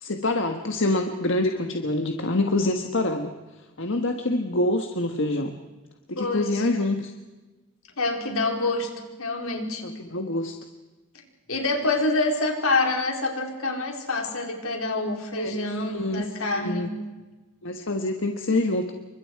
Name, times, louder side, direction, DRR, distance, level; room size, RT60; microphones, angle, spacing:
voice 1, 0.0-3.3 3.8-5.5 6.1-7.1 9.8-10.6 15.3-15.7 15.9-16.3 16.5-16.9 17.6-18.9, left 2 dB, 60° left, 4 dB, 1.5 m, -26 dB
voice 2, 6.2-6.7 8.0-8.9 9.2-9.8 11.1-11.2 11.5-16.9, left 2 dB, 75° left, 2 dB, 4.5 m, -26 dB
29.0 x 25.0 x 4.8 m, 1.2 s
head